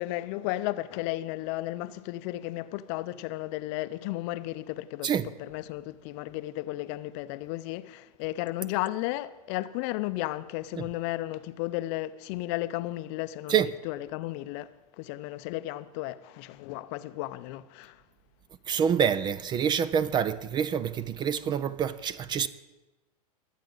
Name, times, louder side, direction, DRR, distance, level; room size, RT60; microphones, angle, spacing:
voice 1, 0.0-5.1 5.4-13.6 13.8-18.0, left 16 dB, 45° left, 0.6 m, -34 dB
voice 2, 18.7-22.5, right 8 dB, 25° right, 0.4 m, -27 dB
21.5 x 8.3 x 3.9 m
hypercardioid pair, 110°, 19 cm